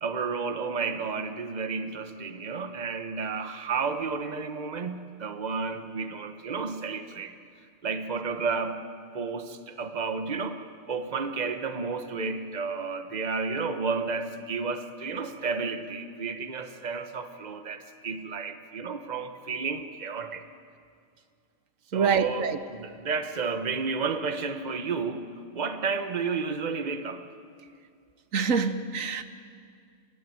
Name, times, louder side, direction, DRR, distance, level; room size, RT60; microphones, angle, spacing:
voice 1, 0.0-7.4 7.8-8.9 9.1-20.4 21.9-27.2, right 5 dB, 35° right, 1.2 m, -32 dB
voice 2, 21.9-22.5 28.3-29.2, right 6 dB, 75° right, 1.4 m, -25 dB
29.5 x 15.5 x 9.4 m
omnidirectional pair, 1.4 m